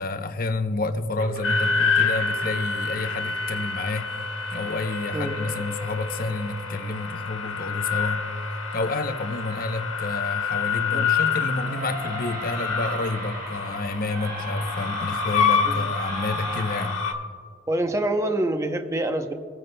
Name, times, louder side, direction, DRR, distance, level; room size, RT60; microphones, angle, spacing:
voice 1, 0.0-4.1 4.5-8.2 8.7-17.0, left 2 dB, 45° left, 8 dB, 0.7 m, -29 dB
sound 1, 1.2-16.9, right 1 dB, 45° right, 1.2 m, -39 dB
sound 2, 1.4-17.1, left 5 dB, 80° left, 1.5 m, -28 dB
voice 2, 17.7-19.3, right 1 dB, 15° right, 6 dB, 0.7 m, -26 dB
22.5 x 9.2 x 2.2 m, 2.1 s
head